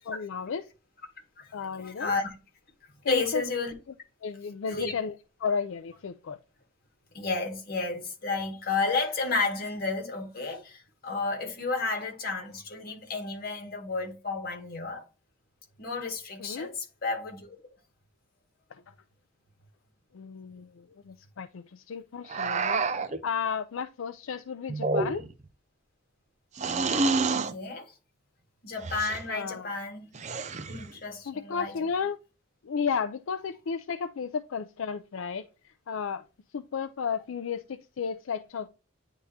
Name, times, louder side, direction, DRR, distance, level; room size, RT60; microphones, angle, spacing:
voice 1, 0.1-0.6 1.5-2.1 3.0-3.4 4.2-5.1 5.4-6.4 16.4-16.7 20.1-22.8 23.2-25.2 29.3-29.7 31.3-32.2 32.7-35.5 35.9-36.2 36.5-38.7, left 6 dB, 70° left, 0.4 m, -33 dB
voice 2, 1.4-2.4 3.1-3.7 4.7-4.9 7.1-15.0 15.8-17.6 27.3-27.9 28.6-30.1 30.7-31.8, left 3 dB, 45° left, 1.8 m, -32 dB
sound 1, 22.3-23.2 24.7-25.4 26.6-27.6 28.8-29.2 30.1-30.9, right 3 dB, 35° right, 0.5 m, -28 dB
9.9 x 3.6 x 2.8 m
head